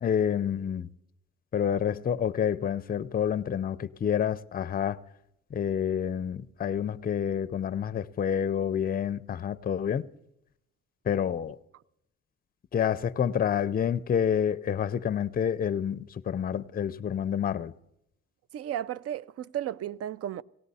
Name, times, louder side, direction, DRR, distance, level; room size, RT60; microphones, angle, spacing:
voice 1, 0.0-0.9 1.5-5.0 5.5-10.1 11.1-11.6 12.7-17.7, left 8 dB, 30° left, 0.5 m, -28 dB
voice 2, 18.5-20.4, right 11 dB, 55° right, 0.4 m, -34 dB
18.0 x 17.0 x 4.1 m
cardioid pair, 90°, 30 cm